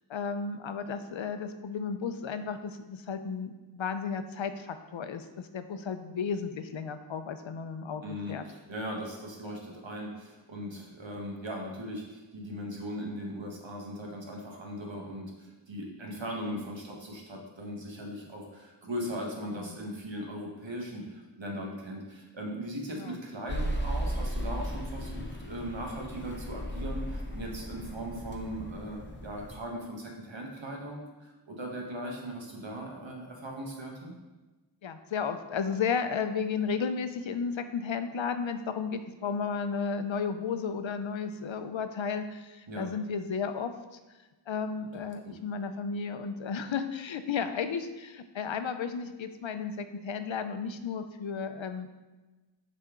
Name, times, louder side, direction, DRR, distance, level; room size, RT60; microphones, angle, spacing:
voice 1, 0.1-8.0 8.3-8.4 16.5-16.7 19.5-19.8 22.9-23.2 34.8-43.7 44.5-51.9, left 6 dB, 90° left, 9 dB, 0.5 m, -33 dB
voice 2, 8.0-34.1 42.7-42.9, equal, 80° right, 0 dB, 1.2 m, -39 dB
sound 1, 23.5-29.6, equal, 25° left, 0.9 m, -36 dB
6.7 x 4.2 x 3.6 m, 1.2 s
wide cardioid pair, 45°, 45 cm